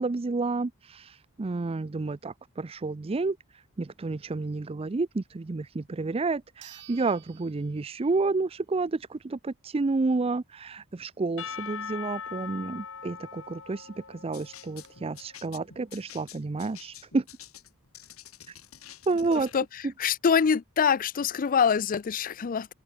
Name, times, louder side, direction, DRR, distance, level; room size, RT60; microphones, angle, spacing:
voice 1, 0.0-17.2 18.5-18.6 19.1-19.5 19.8-19.9, right 3 dB, 25° right, 0.5 m, -30 dB
sound 1, 5.8-5.9 6.6-8.4 8.8-8.9 13.5-13.6 13.8-13.9 14.4-14.9, right 12 dB, 55° right, 3.5 m, -53 dB
Percussion / Church bell, 11.4-15.4, left 7 dB, 65° left, 2.3 m, -41 dB
sound 2, 14.3-19.6, left 11 dB, 85° left, 5.5 m, -49 dB
voice 2, 20.0-22.7, left 6 dB, 40° left, 0.4 m, -24 dB
head